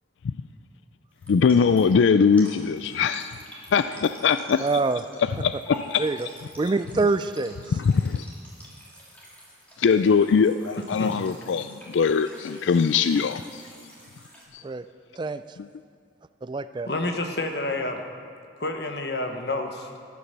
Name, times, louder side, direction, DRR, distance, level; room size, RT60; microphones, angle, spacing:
sound 1, 1.1-14.5, equal, 5° left, 2.6 m, -48 dB
voice 1, 1.3-3.4 3.7-4.7 5.4-6.1 7.7-8.3 9.8-13.6 14.5-14.6, left 6 dB, 80° left, 12 dB, 0.4 m, -21 dB
voice 2, 4.6-5.0 6.0-6.3 6.6-7.6 14.6-14.9 15.2-15.4 16.4-16.9, right 3 dB, 25° right, 12 dB, 0.3 m, -25 dB
voice 3, 16.9-18.0 18.6-19.9, left 2 dB, 60° left, 4 dB, 1.2 m, -29 dB
13.5 x 11.0 x 6.7 m, 2.2 s
head